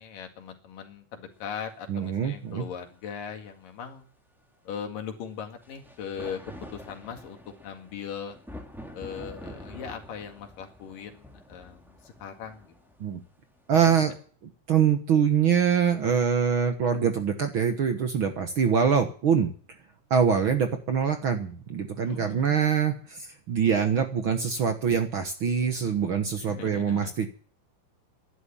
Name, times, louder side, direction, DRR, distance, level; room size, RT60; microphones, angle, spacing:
voice 1, 0.0-4.1 4.7-6.4 6.7-8.4 8.9-12.7 13.7-14.2 22.1-22.7 26.4-27.1, left 7 dB, 90° left, 5 dB, 3.8 m, -39 dB
sound 1, 1.7-1.8 5.6-14.0, equal, ahead, 2.0 m, -46 dB
voice 2, 1.9-2.6 13.0-13.2 13.7-14.1 14.7-19.5 20.1-27.3, right 7 dB, 55° right, 6 dB, 1.5 m, -24 dB
11.5 x 11.0 x 9.9 m, 0.43 s
omnidirectional pair, 3.7 m